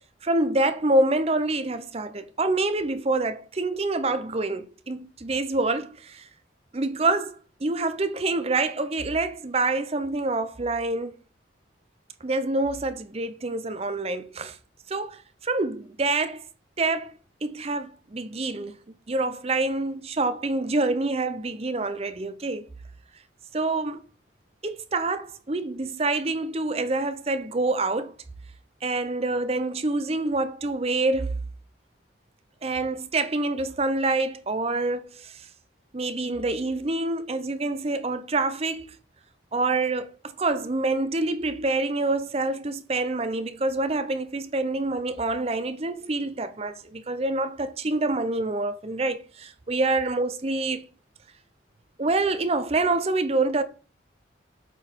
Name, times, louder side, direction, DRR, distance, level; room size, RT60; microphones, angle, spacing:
voice 1, 0.2-6.2 6.7-11.1 12.2-14.6 14.9-16.4 16.8-17.1 17.4-18.7 19.1-22.7 23.5-24.0 24.6-28.1 28.8-31.4 32.6-35.3 35.9-39.0 39.5-40.1 40.4-50.8 52.0-53.6, right 2 dB, 30° right, 0.6 m, -26 dB
8.0 x 4.0 x 4.5 m
head